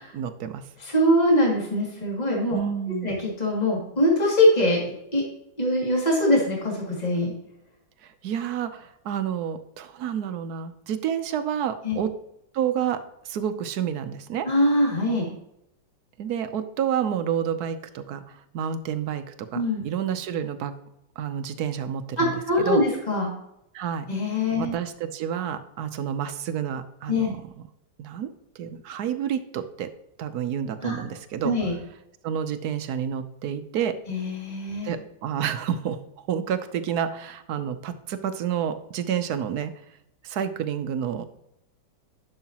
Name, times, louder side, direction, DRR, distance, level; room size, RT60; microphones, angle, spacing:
voice 1, 0.0-0.7 2.5-3.1 8.0-12.1 12.5-14.5 16.2-20.7 21.2-22.3 22.6-22.8 23.7-24.1 24.6-27.5 28.0-29.9 30.2-31.7 32.2-34.0 34.8-36.0 36.3-39.7 40.2-41.2, right 8 dB, 65° right, 10 dB, 1.1 m, -29 dB
voice 2, 0.8-2.6 3.0-5.2 5.6-7.3 11.8-12.0 14.4-15.3 19.5-19.8 22.2-23.3 24.1-24.7 27.1-27.3 30.8-31.0 31.4-31.7 34.1-34.9, left 1 dB, 20° left, -3 dB, 2.4 m, -23 dB
11.0 x 6.5 x 2.9 m, 0.81 s
omnidirectional pair, 2.0 m